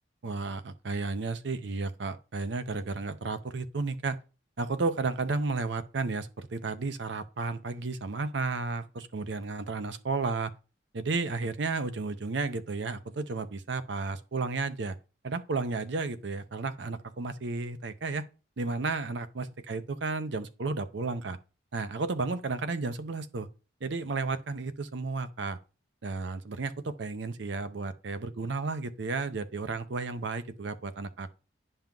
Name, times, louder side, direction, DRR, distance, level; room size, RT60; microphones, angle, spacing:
voice 1, 0.2-4.2 4.6-10.5 10.9-15.0 15.2-18.2 18.6-21.4 21.7-23.5 23.8-25.6 26.0-31.3, right 3 dB, 65° right, 0.6 m, -33 dB
10.5 x 5.6 x 2.3 m
head